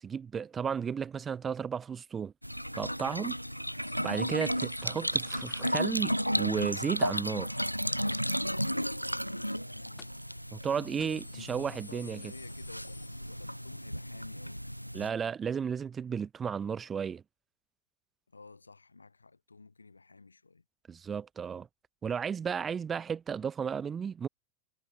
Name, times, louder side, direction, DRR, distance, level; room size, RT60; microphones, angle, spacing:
voice 1, 0.0-2.3 2.8-3.4 4.0-7.5 10.5-12.2 14.9-17.2 20.9-21.7 22.0-24.3, right 7 dB, 20° right, 0.5 m, -33 dB
sound 1, 2.4-15.1, equal, 90° right, 0.6 m, -34 dB
sound 2, 3.8-6.5 10.0-10.4 10.7-10.8 11.0-13.7 14.1-14.2 15.2-15.3, left 12 dB, 30° left, 5.5 m, -58 dB
voice 2, 9.2-10.1 10.8-14.6 18.3-20.6, left 3 dB, 80° left, 4.0 m, -52 dB
figure-of-eight pair, 90°, 0 cm